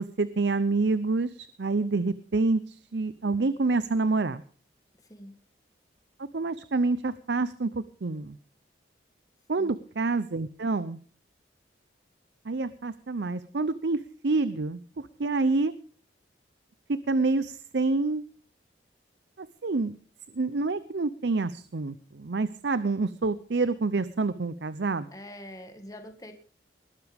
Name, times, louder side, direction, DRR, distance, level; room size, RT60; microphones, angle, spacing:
voice 1, 0.0-4.4 6.3-8.4 9.5-11.0 12.5-15.7 16.9-18.2 19.4-20.0 20.3-25.1, right 3 dB, 70° right, 15 dB, 0.6 m, -27 dB
voice 2, 5.0-5.3 9.6-9.8 25.1-26.3, left 1 dB, 20° left, 6 dB, 1.7 m, -44 dB
20.0 x 12.0 x 3.5 m, 0.43 s
head